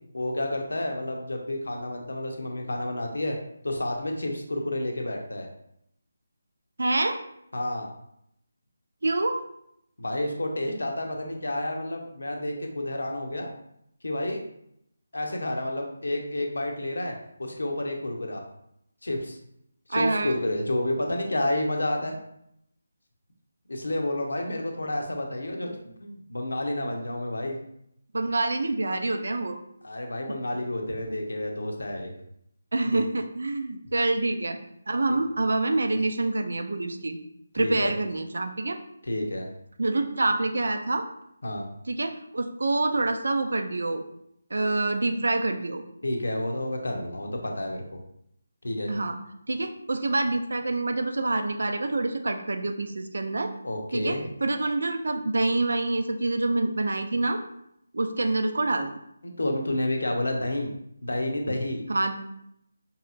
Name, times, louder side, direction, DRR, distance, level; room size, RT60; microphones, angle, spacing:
voice 1, 0.1-3.4 3.6-5.5 7.5-7.9 10.0-13.5 14.0-14.4 15.1-18.4 19.0-19.4 19.9-22.2 23.7-25.7 26.0-27.6 29.8-32.1 32.9-33.0 37.5-37.9 39.0-39.5 41.4-41.7 46.0-48.0 48.6-48.9 53.6-54.2 59.2-60.7 61.0-61.8, left 1 dB, 70° left, 2 dB, 0.8 m, -30 dB
voice 2, 6.8-7.2 9.0-9.4 19.9-20.3 28.1-29.6 30.3-30.4 32.7-34.6 34.9-37.2 37.5-38.8 39.8-41.0 41.9-44.0 44.5-45.8 48.9-49.2 49.5-53.5 53.9-57.4 57.9-58.9 61.9-62.2, right 2 dB, 65° right, 6 dB, 0.5 m, -26 dB
5.3 x 2.8 x 2.5 m, 0.75 s
figure-of-eight pair, 155°, 0 cm